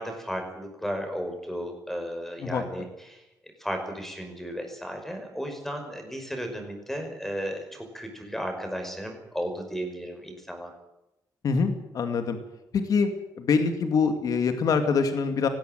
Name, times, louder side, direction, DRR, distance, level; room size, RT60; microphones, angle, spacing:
voice 1, 0.0-3.2 3.6-10.7, equal, 5° left, 4 dB, 5.5 m, -34 dB
voice 2, 11.4-12.4 12.7-13.1 13.4-15.5, left 5 dB, 60° left, 7 dB, 2.4 m, -24 dB
19.5 x 16.0 x 9.2 m, 0.93 s
cardioid pair, 135°, 7 cm